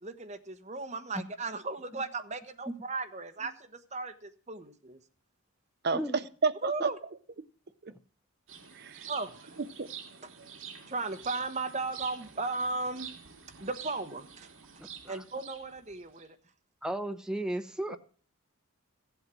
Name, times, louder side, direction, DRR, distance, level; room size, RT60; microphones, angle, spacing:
voice 1, 0.0-5.0 6.6-7.0 9.1-9.6 10.2-10.3 10.9-13.1 13.6-14.5 15.1-16.4, right 3 dB, 30° right, 7 dB, 1.1 m, -36 dB
voice 2, 5.8-6.9 7.8-7.9 8.7-9.0 9.8-9.9, right 4 dB, 50° right, 14 dB, 0.6 m, -30 dB
sound 1, 8.5-16.2, right 7 dB, 65° right, 2.3 m, -47 dB
voice 3, 14.8-15.2 16.8-18.0, right 1 dB, 5° right, 8 dB, 0.7 m, -35 dB
15.0 x 8.1 x 6.1 m, 0.42 s
head